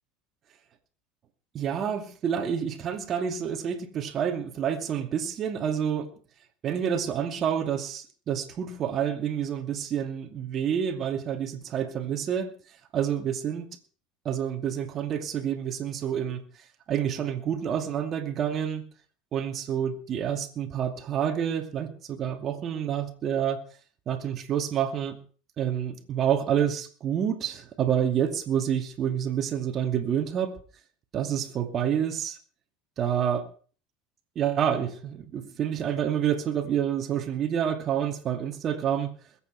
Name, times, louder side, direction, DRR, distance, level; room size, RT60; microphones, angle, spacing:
voice 1, 1.5-6.1 6.6-12.5 12.9-13.7 14.2-16.4 16.9-18.8 19.3-23.6 24.1-25.2 25.6-30.5 31.1-32.4 33.0-33.5 34.4-39.1, right 9 dB, 40° right, 5 dB, 2.4 m, -28 dB
21.5 x 8.5 x 4.7 m, 0.41 s
hypercardioid pair, 80°, 0 cm